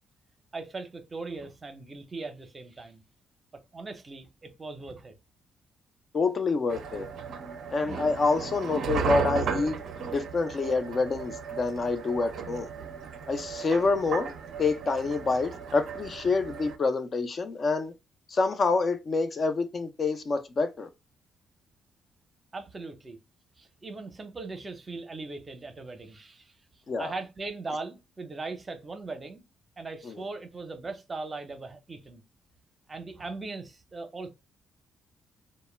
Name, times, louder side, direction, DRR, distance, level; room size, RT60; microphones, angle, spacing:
voice 1, 0.5-3.0 3.7-5.1 22.5-23.2 23.6-26.5 27.0-29.4 29.8-32.2 32.9-34.3, right 3 dB, 30° right, 0.6 m, -39 dB
voice 2, 6.1-7.1 7.7-12.7 13.3-14.3 14.6-17.9 18.3-20.9 26.9-27.1 30.0-30.3, left 3 dB, 40° left, 0.5 m, -27 dB
sound 1, 6.7-16.8, right 6 dB, 70° right, 0.4 m, -35 dB
2.1 x 2.1 x 3.1 m
cardioid pair, 90°, 0 cm